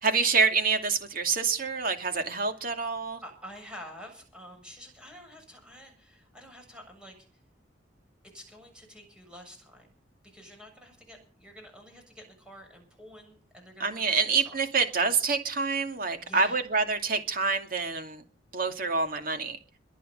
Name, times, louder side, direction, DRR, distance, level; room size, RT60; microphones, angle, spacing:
voice 1, 0.0-3.2 13.8-18.2 18.5-19.6, right 4 dB, 50° right, 2.5 m, -27 dB
voice 2, 3.2-7.2 8.3-9.9 10.2-14.6 16.2-16.6, equal, 5° right, 7.3 m, -48 dB
23.0 x 9.2 x 5.6 m
head